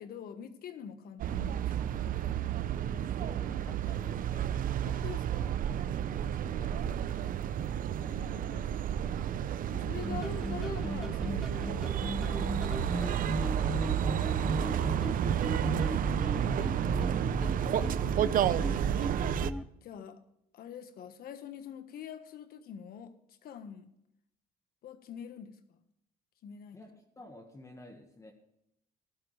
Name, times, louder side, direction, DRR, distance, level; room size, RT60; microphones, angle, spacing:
voice 1, 0.0-2.0 4.8-5.6 8.0-8.7 9.7-13.6 15.0-17.7 18.9-19.1 19.8-20.2 20.5-23.9 24.8-25.8 26.4-26.8, left 8 dB, 65° left, 10 dB, 1.5 m, -46 dB
sound 1, 1.2-19.5, right 10 dB, 55° right, 0.7 m, -31 dB
voice 2, 2.9-4.5 6.2-7.6 8.3-9.0 14.0-14.7 26.7-28.3, left 1 dB, 20° left, 2 dB, 1.7 m, -52 dB
sound 2, 10.0-19.6, equal, ahead, 0.6 m, -36 dB
15.0 x 12.0 x 3.4 m, 0.80 s
cardioid pair, 110°, 17 cm